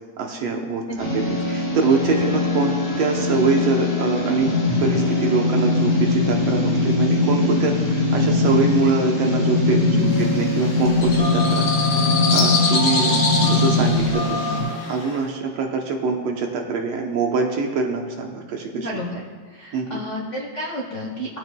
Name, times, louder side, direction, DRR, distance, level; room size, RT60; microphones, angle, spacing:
voice 1, 0.2-4.5 4.8-13.1 13.4-14.2 14.9-18.9 19.7-20.0, right 4 dB, 70° right, 2 dB, 1.8 m, -24 dB
sound 1, 1.0-14.6, left 2 dB, 40° left, 3.9 m, -21 dB
voice 2, 9.9-10.2 13.1-13.2 18.7-19.3 19.5-21.4, left 1 dB, 85° left, -3 dB, 0.6 m, -30 dB
sound 2, 10.1-15.2, left 4 dB, 55° left, 2.1 m, -26 dB
19.5 x 8.2 x 2.2 m, 1.5 s
omnidirectional pair, 3.4 m